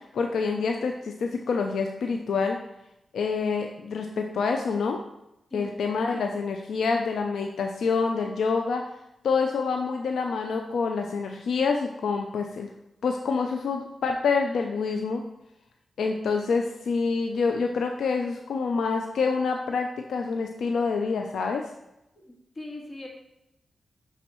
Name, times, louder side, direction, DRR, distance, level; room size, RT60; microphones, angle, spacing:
voice 1, 0.1-2.6 3.1-5.0 5.5-8.8 9.2-12.7 13.0-15.2 16.0-21.7, left 4 dB, 80° left, 3 dB, 0.4 m, -27 dB
voice 2, 5.5-5.8 22.2-22.3 22.5-23.1, left 1 dB, 45° left, 0 dB, 1.8 m, -39 dB
9.1 x 4.0 x 3.0 m, 0.88 s
supercardioid pair, 45°, 0 cm